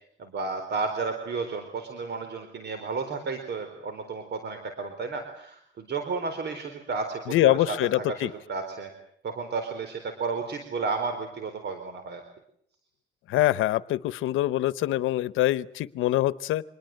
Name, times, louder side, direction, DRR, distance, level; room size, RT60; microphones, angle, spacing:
voice 1, 0.2-8.9 9.2-12.2, right 4 dB, 60° right, 7 dB, 4.3 m, -32 dB
voice 2, 7.3-8.3 13.3-16.6, left 15 dB, 90° left, 18 dB, 0.9 m, -24 dB
26.0 x 21.0 x 7.9 m, 0.70 s
cardioid pair, 90°, 20 cm